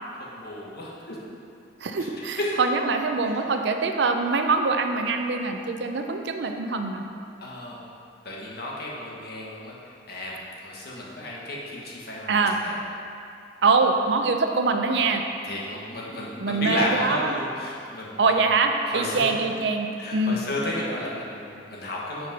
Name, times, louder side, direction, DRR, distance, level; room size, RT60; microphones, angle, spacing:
voice 1, 0.2-1.2 2.0-2.1 2.4-2.5 7.4-7.8 8.2-9.7 10.1-12.8 15.4-18.5 18.8-19.4 20.0-22.3, left 1 dB, 60° left, -4 dB, 1.3 m, -33 dB
voice 2, 1.8-7.0 12.3-12.6 13.6-15.2 16.4-17.3 18.2-20.4, right 4 dB, 70° right, 5 dB, 0.5 m, -24 dB
5.8 x 5.2 x 5.3 m, 2.5 s
head